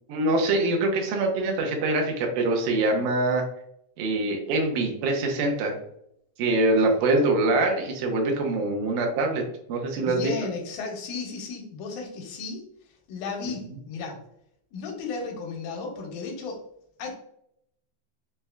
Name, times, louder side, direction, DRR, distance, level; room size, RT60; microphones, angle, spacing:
voice 1, 0.1-3.4 4.0-5.7 6.4-9.4 9.7-10.3, right 2 dB, 85° right, 1 dB, 2.2 m, -24 dB
voice 2, 10.0-12.6 13.1-14.2 14.7-16.6 17.0-17.1, left 4 dB, 85° left, 1 dB, 2.1 m, -34 dB
5.6 x 2.1 x 2.3 m, 0.74 s
omnidirectional pair, 3.5 m